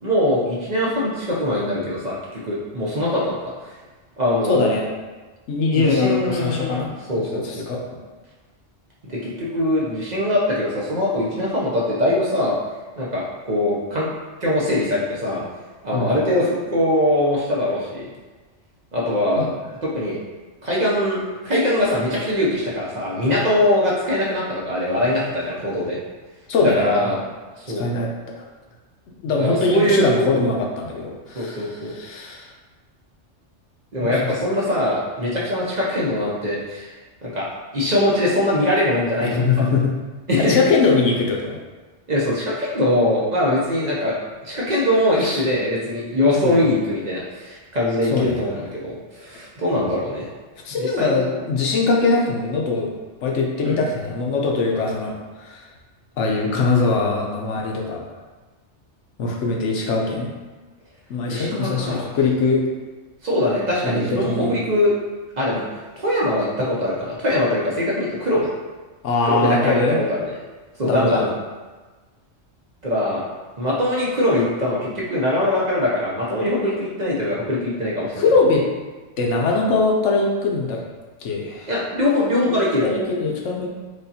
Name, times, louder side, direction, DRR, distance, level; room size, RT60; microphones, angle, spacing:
voice 1, 0.0-3.4 3.6-3.8 4.2-4.7 5.7-7.7 9.1-12.6 13.0-14.1 14.4-15.4 15.8-18.1 18.9-19.4 19.8-20.2 20.6-26.0 26.8-27.2 27.6-27.9 29.4-30.5 31.4-31.9 33.9-36.9 37.2-37.5 37.7-39.4 40.3-40.6 42.1-44.2 44.4-50.3 50.8-51.1 53.6-53.8 61.3-62.2 63.2-64.9 65.4-65.7 66.0-68.5 69.2-70.3 70.8-71.3 72.8-73.2 73.6-78.2 81.7-82.8, left 1 dB, 45° right, -5 dB, 0.7 m, -22 dB
voice 2, 4.5-4.8 5.5-6.9 7.3-7.9 15.9-16.2 19.4-19.5 26.5-27.1 27.7-28.1 28.4-28.5 29.2-32.5 34.0-34.2 39.2-39.9 40.4-41.6 45.2-45.4 46.4-46.7 48.1-48.4 50.6-52.9 53.2-55.6 56.2-58.0 59.2-60.3 61.1-62.6 63.8-64.5 69.0-70.0 70.8-71.2 78.2-78.6 79.2-80.8 81.2-81.7 82.5-82.6 82.8-83.7, left 3 dB, 85° left, -1 dB, 1.0 m, -22 dB
5.0 x 2.2 x 2.7 m, 1.3 s
omnidirectional pair, 1.2 m